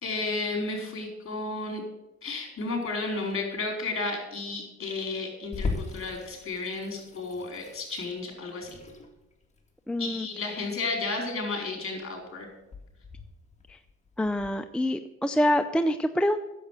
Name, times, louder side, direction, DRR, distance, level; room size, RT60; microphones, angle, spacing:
voice 1, 0.0-1.8 2.2-8.8 10.0-12.5, left 3 dB, 45° left, 2 dB, 4.7 m, -32 dB
Water tap faucet / Sink (filling or washing), 5.5-14.5, left 3 dB, 20° left, 2.1 m, -40 dB
voice 2, 9.9-10.3 14.2-16.4, left 1 dB, 5° left, 7 dB, 0.5 m, -26 dB
10.0 x 7.5 x 8.1 m, 0.98 s
cardioid pair, 90°, 30 cm